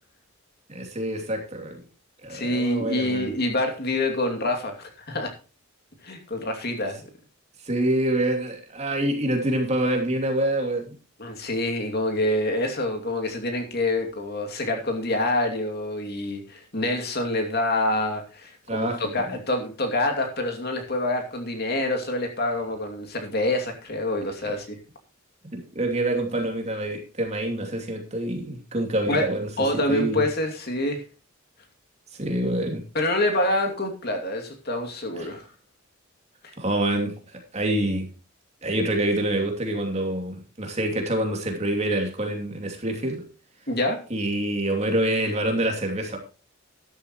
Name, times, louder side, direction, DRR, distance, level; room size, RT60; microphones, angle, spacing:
voice 1, 0.7-1.8 2.2-3.4 7.6-10.9 18.7-19.3 24.4-24.5 25.5-30.2 32.1-32.8 35.2-35.3 36.6-38.1 38.6-43.2 44.1-46.2, right 1 dB, 35° right, 2.7 m, -26 dB
voice 2, 2.3-5.3 6.0-7.0 11.2-24.8 29.1-29.3 29.6-31.0 32.9-35.5 36.4-36.5 43.7-44.0, left 1 dB, 50° left, 2.6 m, -26 dB
13.0 x 12.0 x 3.1 m
head